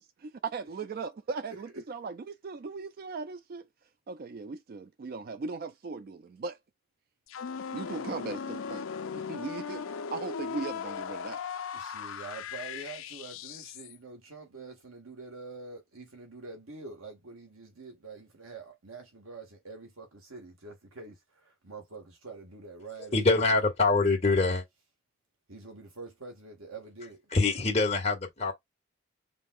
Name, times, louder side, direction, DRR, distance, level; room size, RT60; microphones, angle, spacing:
voice 1, 0.2-3.7 4.1-6.6 7.7-8.9 9.1-11.4, right 4 dB, 45° right, 0.3 m, -38 dB
sound 1, 7.3-14.0, left 6 dB, 70° left, 0.5 m, -38 dB
voice 2, 11.7-23.2 25.5-27.2, right 3 dB, 80° right, 1.8 m, -46 dB
voice 3, 23.1-24.6 27.3-28.5, left 3 dB, 30° left, 1.8 m, -24 dB
5.3 x 3.5 x 2.5 m
head